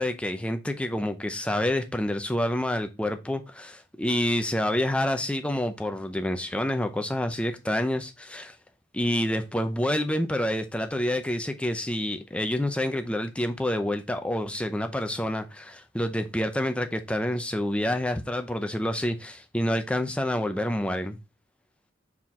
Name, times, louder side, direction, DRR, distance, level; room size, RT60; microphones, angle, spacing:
voice 1, 0.0-8.5 8.9-21.2, left 1 dB, 5° left, 0.6 m, -28 dB
5.9 x 4.7 x 3.5 m
head